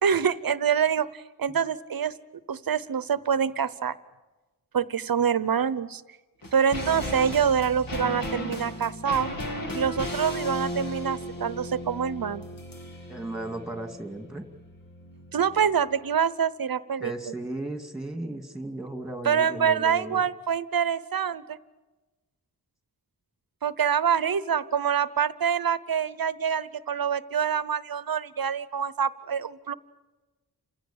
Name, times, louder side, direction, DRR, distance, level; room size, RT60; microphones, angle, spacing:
voice 1, 0.0-2.1 2.5-3.9 4.7-6.0 6.5-9.3 9.7-12.5 15.3-17.1 19.2-21.6 23.6-29.7, right 7 dB, 60° right, 16 dB, 0.9 m, -26 dB
sound 1, 6.4-16.1, equal, 55° left, 2.3 m, -36 dB
voice 2, 13.1-14.4 17.0-20.2, right 2 dB, ahead, 5 dB, 2.5 m, -35 dB
29.0 x 16.5 x 8.8 m, 1.2 s
wide cardioid pair, 125°, 39 cm